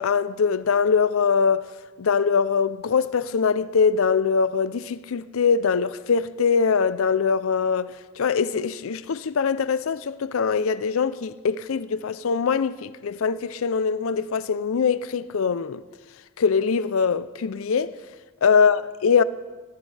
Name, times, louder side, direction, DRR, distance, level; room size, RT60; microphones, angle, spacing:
voice 1, 0.0-1.7 2.0-15.8 16.4-17.9 18.4-19.2, left 6 dB, 80° left, 0.5 m, -22 dB
18.5 x 16.0 x 3.3 m
head